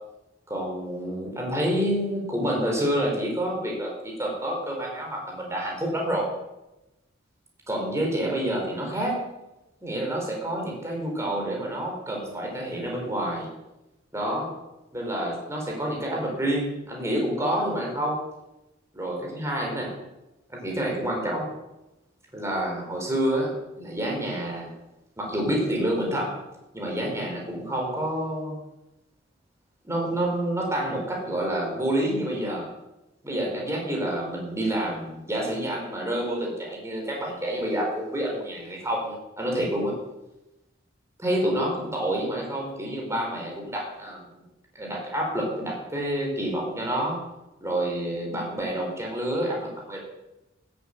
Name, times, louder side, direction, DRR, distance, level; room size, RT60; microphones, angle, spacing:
voice 1, 0.5-6.3 7.7-9.2 9.8-13.5 14.1-14.5 14.9-18.2 18.9-20.0 20.5-21.5 22.3-24.7 25.2-26.4 26.7-28.6 29.8-32.7 33.2-39.9 41.2-44.4 44.8-47.2 47.6-50.0, right 1 dB, 15° right, -1 dB, 4.7 m, -28 dB
14.0 x 9.5 x 9.2 m, 0.97 s
head